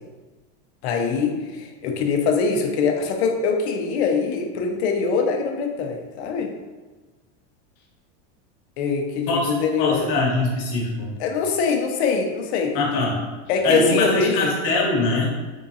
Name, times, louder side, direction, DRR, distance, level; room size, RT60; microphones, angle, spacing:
voice 1, 0.8-6.5 8.8-10.0 11.2-12.8 13.5-14.5, left 5 dB, 70° left, 3 dB, 0.7 m, -23 dB
voice 2, 9.3-11.1 12.7-13.2 13.6-15.4, left 2 dB, 45° left, -2 dB, 1.1 m, -22 dB
3.7 x 3.7 x 2.7 m, 1.2 s
supercardioid pair, 165°, 35 cm